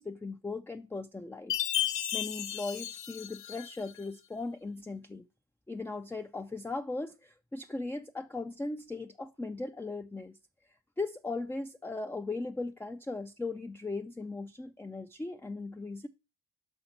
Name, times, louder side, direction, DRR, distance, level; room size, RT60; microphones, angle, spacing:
voice 1, 0.0-1.5 2.1-5.2 5.7-10.4 11.0-16.1, left 3 dB, 5° left, 0.3 m, -38 dB
Chime, 1.5-4.0, left 11 dB, 80° left, 0.8 m, -34 dB
5.8 x 5.4 x 5.8 m
cardioid pair, 75°, 43 cm